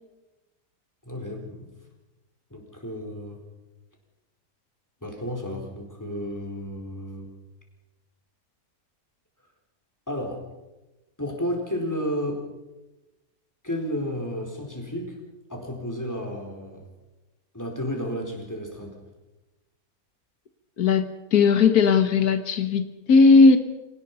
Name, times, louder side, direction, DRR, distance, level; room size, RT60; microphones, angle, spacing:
voice 1, 1.0-1.7 2.5-3.4 5.0-7.3 10.1-10.4 11.2-12.4 13.6-15.2 15.5-16.8 17.5-18.9, equal, 10° left, 1 dB, 4.3 m, -32 dB
voice 2, 20.8-23.6, left 4 dB, 90° left, 9 dB, 1.7 m, -17 dB
26.0 x 18.5 x 5.5 m, 1.1 s
omnidirectional pair, 1.6 m